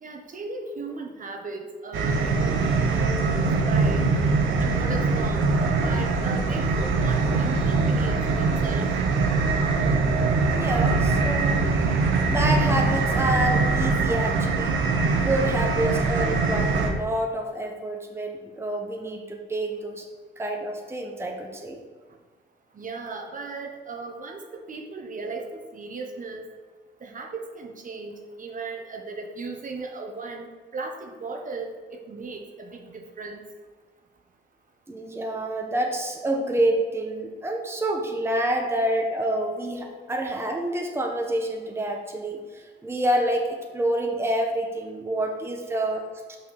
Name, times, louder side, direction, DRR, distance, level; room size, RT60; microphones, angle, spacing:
voice 1, 0.0-4.1 4.6-5.5 5.8-8.9 22.7-26.4 27.0-30.5 30.7-31.7 32.1-33.4, right 3 dB, 40° right, 2 dB, 1.1 m, -36 dB
sound 1, 1.9-16.9, right 3 dB, 80° right, 1.1 m, -23 dB
voice 2, 10.5-11.7 12.3-14.8 15.1-20.0 20.4-21.8 34.9-46.0, right 1 dB, 10° right, 2 dB, 1.1 m, -27 dB
5.8 x 4.7 x 6.5 m, 1.4 s
cardioid pair, 90°, 20 cm